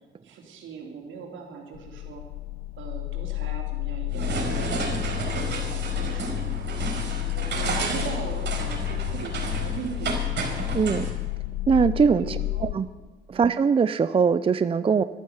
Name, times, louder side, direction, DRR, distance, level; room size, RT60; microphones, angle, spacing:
voice 1, 0.2-2.2 2.8-10.2 12.2-12.8 13.4-13.6, right 5 dB, 75° right, 2 dB, 3.6 m, -40 dB
sound 1, 1.7-12.7, left 21 dB, 80° left, 0.6 m, -31 dB
sound 2, 4.1-11.1, right 4 dB, 60° right, 4.9 m, -31 dB
voice 2, 10.7-11.1 11.7-12.9 13.3-15.0, right 6 dB, 30° right, 14 dB, 0.5 m, -21 dB
12.5 x 12.5 x 8.0 m, 1.3 s
cardioid pair, 90°, 20 cm